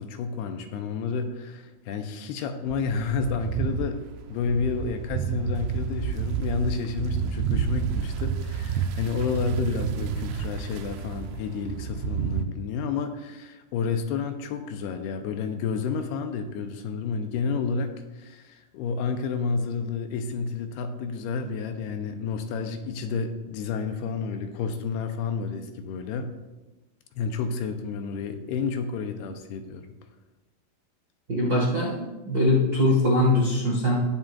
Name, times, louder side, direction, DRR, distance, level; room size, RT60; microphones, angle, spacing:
voice 1, 0.0-4.0 4.3-26.3 27.1-29.9, left 5 dB, 80° left, 7 dB, 2.6 m, -30 dB
sound 1, 2.7-12.4, right 7 dB, 85° right, 2.8 m, -30 dB
voice 2, 31.3-34.0, left 1 dB, 70° right, -5 dB, 0.9 m, -22 dB
18.5 x 7.5 x 2.4 m, 1.1 s
omnidirectional pair, 4.8 m